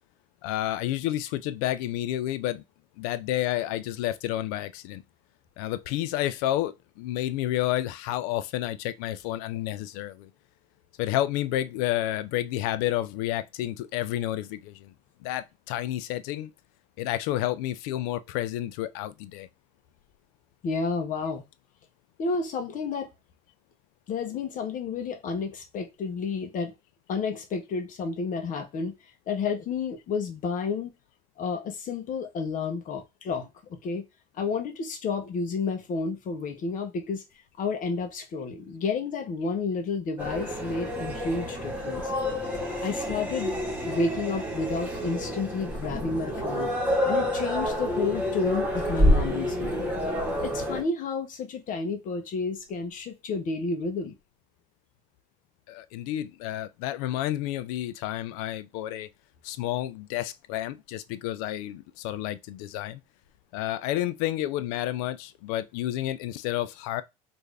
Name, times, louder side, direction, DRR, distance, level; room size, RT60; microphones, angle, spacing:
voice 1, 0.4-2.6 3.0-5.0 5.6-10.3 11.0-14.9 15.2-16.5 17.0-19.5 55.7-59.1 59.4-63.0 63.5-67.0, left 14 dB, 80° left, 0.4 m, -30 dB
voice 2, 20.6-21.4 22.2-23.1 24.1-26.7 27.1-28.9 29.3-30.9 31.4-34.0 34.3-37.2 37.6-42.1 42.8-43.5 43.8-46.7 47.1-49.8 50.4-54.1, left 4 dB, 45° left, 0.8 m, -31 dB
sound 1, 40.2-50.8, equal, 10° right, 1.5 m, -28 dB
3.3 x 2.6 x 3.2 m
supercardioid pair, 95°, 18 cm